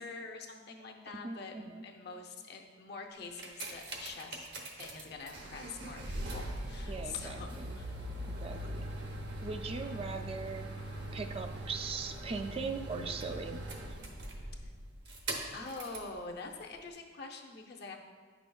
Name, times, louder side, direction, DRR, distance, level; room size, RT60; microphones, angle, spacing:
voice 1, 0.0-7.9 15.5-18.0, left 4 dB, 60° left, 2 dB, 0.6 m, -45 dB
voice 2, 1.2-1.8 6.9-7.7 8.3-8.9 9.4-10.7 11.1-13.6, right 4 dB, 30° right, 6 dB, 0.3 m, -40 dB
sound 1, 3.1-16.1 16.9-17.0, right 1 dB, 65° right, 0.9 m, -41 dB
8.8 x 6.0 x 2.3 m, 1.5 s
head